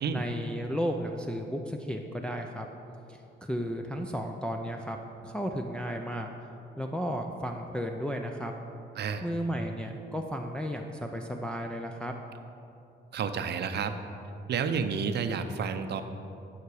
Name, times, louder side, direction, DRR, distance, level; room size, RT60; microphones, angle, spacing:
voice 1, 0.1-2.7 3.1-5.0 5.2-6.3 6.8-8.5 9.2-12.1, equal, 5° left, 2 dB, 0.5 m, -34 dB
voice 2, 13.1-13.9 14.5-16.0, right 6 dB, 55° right, 8 dB, 0.6 m, -30 dB
9.5 x 6.0 x 4.8 m, 2.8 s
cardioid pair, 90°, 20 cm